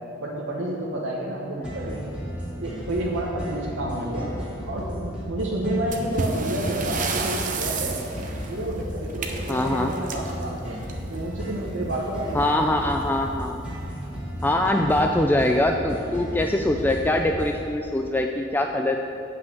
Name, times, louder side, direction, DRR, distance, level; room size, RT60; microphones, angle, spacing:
voice 1, 0.2-2.2 2.6-4.3 4.7-8.0 8.4-12.5, right 1 dB, 90° right, -4 dB, 1.2 m, -30 dB
sound 1, 1.6-17.6, equal, 5° right, 2.3 m, -34 dB
sound 2, 5.9-11.3 12.5-12.7 13.0-13.1 13.8-13.9 14.5-14.8, right 4 dB, 45° right, 0.8 m, -31 dB
voice 2, 9.5-9.9 12.3-13.6 14.4-19.0, left 1 dB, 10° left, 3 dB, 0.3 m, -23 dB
8.0 x 5.7 x 7.8 m, 2.6 s
head